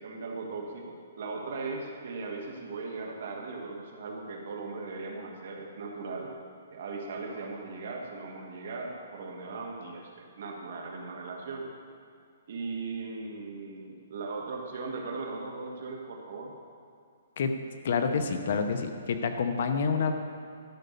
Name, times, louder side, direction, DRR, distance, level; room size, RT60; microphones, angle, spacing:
voice 1, 0.0-6.3 6.7-11.7 12.5-16.5, right 3 dB, 55° right, 1 dB, 1.7 m, -38 dB
voice 2, 17.8-20.1, left 5 dB, 50° left, 7 dB, 0.8 m, -28 dB
12.0 x 5.4 x 6.7 m, 2.4 s
hypercardioid pair, 165°, 0 cm